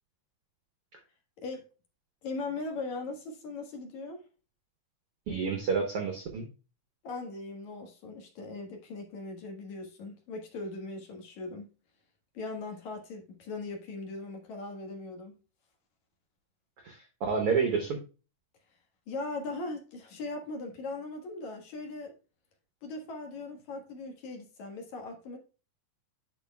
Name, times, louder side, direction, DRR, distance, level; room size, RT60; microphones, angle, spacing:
voice 1, 2.2-4.2 7.0-11.7 12.3-15.4 19.1-22.1 22.8-25.4, left 3 dB, 60° left, 2.6 m, -39 dB
voice 2, 5.3-6.5 16.8-18.0, right 5 dB, 80° right, 1.3 m, -29 dB
10.5 x 4.8 x 2.2 m
omnidirectional pair, 4.3 m